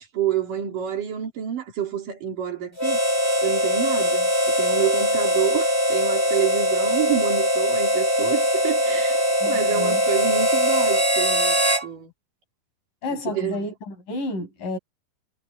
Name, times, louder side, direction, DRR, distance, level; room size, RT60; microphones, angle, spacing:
voice 1, 0.0-3.0 3.4-12.1 13.1-13.6, right 10 dB, 85° right, 5.1 m, -28 dB
Harmonica, 2.8-11.9, equal, 10° left, 2.1 m, -21 dB
voice 2, 9.4-10.0 13.0-14.8, left 2 dB, 80° left, 8.6 m, -31 dB
omnidirectional pair, 3.7 m